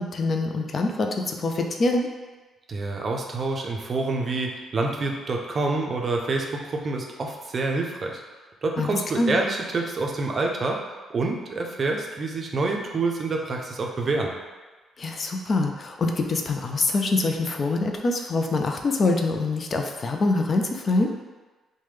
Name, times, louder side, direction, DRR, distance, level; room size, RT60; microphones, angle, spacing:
voice 1, 0.0-2.1 8.8-9.4 15.0-21.1, left 3 dB, 40° left, 3 dB, 0.3 m, -25 dB
voice 2, 2.7-8.2 8.6-10.8 11.1-14.3, right 3 dB, 45° right, 1 dB, 0.4 m, -27 dB
3.1 x 2.1 x 3.2 m, 1.3 s
cardioid pair, 90°, 0 cm